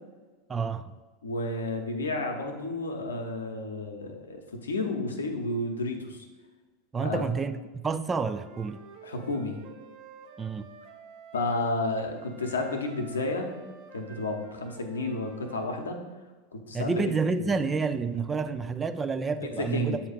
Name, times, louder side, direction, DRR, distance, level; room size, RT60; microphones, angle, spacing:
voice 1, 0.5-0.9 6.9-8.8 10.4-10.7 16.7-20.0, right 4 dB, 20° right, 0.4 m, -29 dB
voice 2, 1.2-6.3 7.0-7.2 9.0-9.6 11.3-13.5 13.9-16.0 16.5-17.5 19.7-20.0, left 2 dB, 85° left, 0.8 m, -31 dB
Wind instrument woodwind instrument, 8.3-11.6 12.1-15.9, right 6 dB, 60° right, 0.7 m, -50 dB
7.9 x 2.8 x 5.0 m
hypercardioid pair, 90°, 0 cm